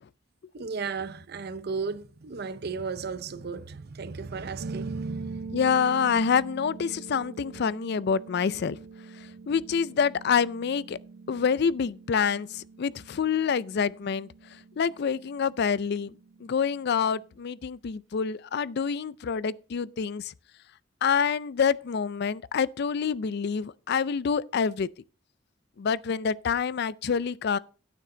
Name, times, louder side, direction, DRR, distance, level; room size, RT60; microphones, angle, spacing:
voice 1, 0.5-5.6, right 4 dB, 55° right, 0.7 m, -35 dB
sound 1, 4.6-17.4, right 4 dB, 90° right, 0.5 m, -44 dB
voice 2, 5.5-8.8 9.5-11.0 11.3-14.3 14.8-16.1 16.4-20.3 21.0-24.9 25.8-27.6, left 6 dB, 55° left, 0.4 m, -27 dB
9.6 x 9.3 x 3.9 m
head